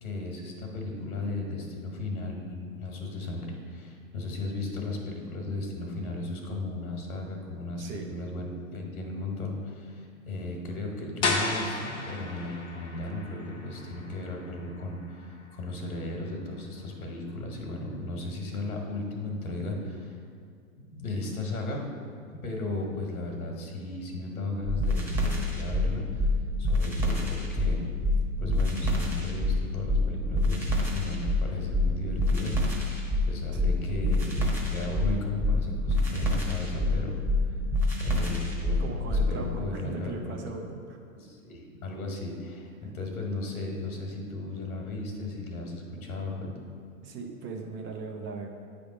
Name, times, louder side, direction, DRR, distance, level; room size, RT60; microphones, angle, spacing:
voice 1, 0.0-20.2 20.8-21.8 22.4-26.3 26.6-27.8 28.4-32.9 33.3-37.2 37.4-37.6 38.0-40.4 41.1-46.5, left 2 dB, 85° left, 1 dB, 1.6 m, -35 dB
sound 1, 11.2-16.9, left 3 dB, 15° left, 0.3 m, -35 dB
sound 2, 24.6-39.3, left 1 dB, 5° right, 1.1 m, -26 dB
voice 2, 38.8-41.0 47.0-48.5, right 4 dB, 25° right, 2 dB, 0.6 m, -38 dB
8.9 x 3.6 x 4.9 m, 2.2 s
hypercardioid pair, 120°, 42 cm